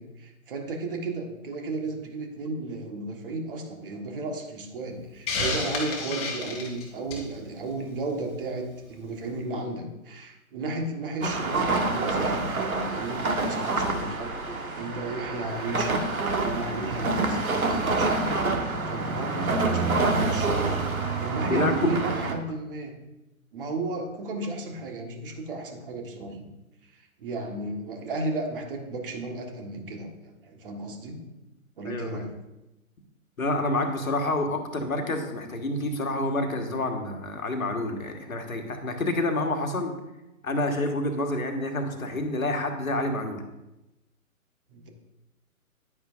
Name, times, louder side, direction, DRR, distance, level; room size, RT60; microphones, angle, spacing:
voice 1, 0.0-22.9 23.5-26.5 26.8-30.1 30.4-31.3 31.8-32.3 44.7-44.9, right 2 dB, 40° right, 3 dB, 1.5 m, -34 dB
Hiss, 5.3-7.3, left 3 dB, 15° left, 1.5 m, -30 dB
sound 1, 11.2-22.3, right 3 dB, 80° right, 1.5 m, -27 dB
voice 2, 21.5-21.9 31.9-32.2 33.4-39.9 40.4-43.4, left 2 dB, 75° left, 4 dB, 1.6 m, -28 dB
10.0 x 9.8 x 2.6 m, 0.98 s
figure-of-eight pair, 135°, 42 cm